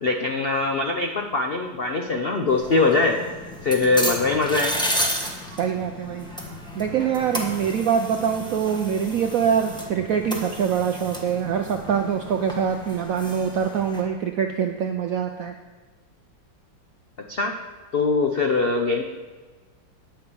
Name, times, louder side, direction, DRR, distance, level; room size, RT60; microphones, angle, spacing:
voice 1, 0.0-3.2 3.6-4.7 17.3-17.5 17.9-19.0, left 3 dB, 75° left, 3 dB, 0.5 m, -22 dB
sound 1, 2.5-14.0, equal, 5° left, 0.9 m, -32 dB
voice 2, 5.6-6.3 6.7-15.5, right 7 dB, 75° right, 5 dB, 0.7 m, -24 dB
9.2 x 5.5 x 6.9 m, 1.3 s
omnidirectional pair, 2.1 m